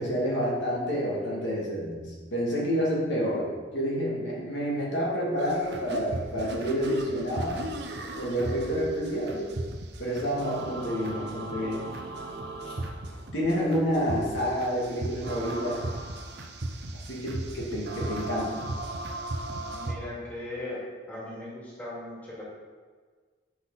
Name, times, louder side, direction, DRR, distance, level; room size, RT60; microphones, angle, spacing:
voice 1, 0.0-7.7 8.2-9.5 10.0-11.9 12.6-12.8 13.3-15.8 17.1-18.7, equal, 70° left, -5 dB, 2.3 m, -29 dB
sound 1, 5.4-19.9, right 1 dB, 60° right, 0.8 m, -37 dB
voice 2, 19.5-20.8 21.1-22.4, left 2 dB, 10° left, -8 dB, 2.2 m, -38 dB
10.0 x 5.9 x 4.1 m, 1.5 s
head